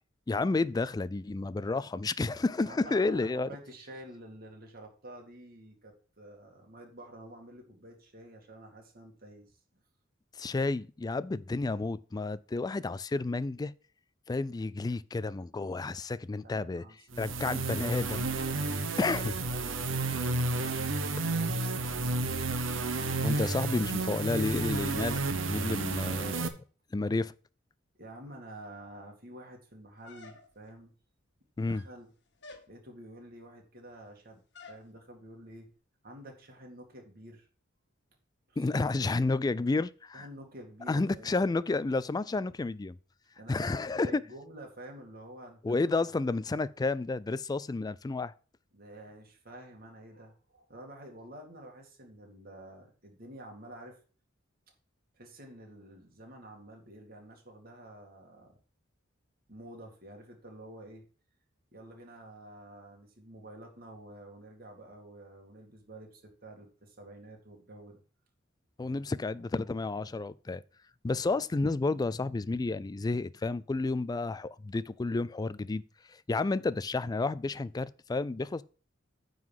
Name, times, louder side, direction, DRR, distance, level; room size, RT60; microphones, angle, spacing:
voice 1, 0.3-3.5 10.3-13.7 14.3-16.9 17.2-18.3 19.0-19.3 23.2-25.2 25.5-26.5 26.9-27.3 31.6-31.8 38.6-40.3 40.9-43.0 43.5-44.2 45.6-48.3 68.8-70.6 71.0-75.8 76.1-78.6, left 3 dB, 20° left, 0.3 m, -31 dB
voice 2, 2.5-9.6 16.4-17.9 18.4-20.4 21.1-22.4 27.9-30.9 31.6-32.1 32.7-34.4 34.7-35.7 36.0-37.5 38.5-38.6 40.1-41.5 43.4-46.4 48.7-54.0 55.1-58.6 59.5-61.0 61.7-68.0, right 1 dB, 50° right, 2.3 m, -49 dB
sound 1, 17.1-26.5, right 3 dB, 70° right, 1.0 m, -31 dB
sound 2, 30.0-30.8 31.6-32.0 32.4-32.7 34.5-34.9, left 3 dB, 60° left, 1.3 m, -51 dB
9.5 x 4.0 x 7.3 m
head